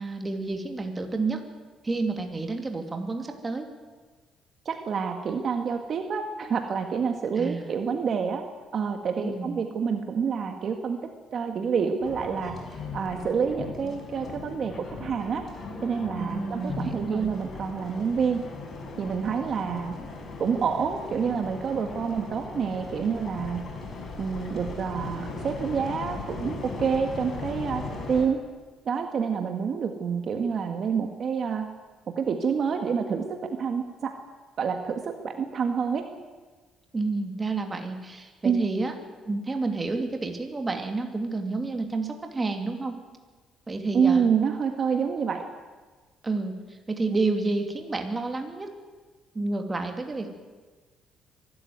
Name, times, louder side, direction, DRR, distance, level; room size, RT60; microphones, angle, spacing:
voice 1, 0.0-1.4 1.8-3.7 7.4-7.7 9.2-9.6 16.2-17.3 36.9-38.9 39.2-43.0 43.7-44.2 46.2-48.7 49.3-50.3, right 3 dB, 20° right, 5 dB, 2.7 m, -30 dB
voice 2, 4.7-8.4 8.7-11.0 11.3-12.5 12.9-14.7 15.0-15.4 15.8-18.4 19.0-19.9 20.4-23.6 24.2-28.4 28.9-31.7 32.2-34.1 34.6-36.0 38.4-38.6 43.9-45.4, right 6 dB, 50° right, 5 dB, 1.7 m, -27 dB
Alien Talk Granular Excerpt, 12.0-28.3, left 3 dB, 45° left, 4.5 m, -38 dB
23.5 x 13.0 x 9.5 m, 1.3 s
cardioid pair, 120°, 0 cm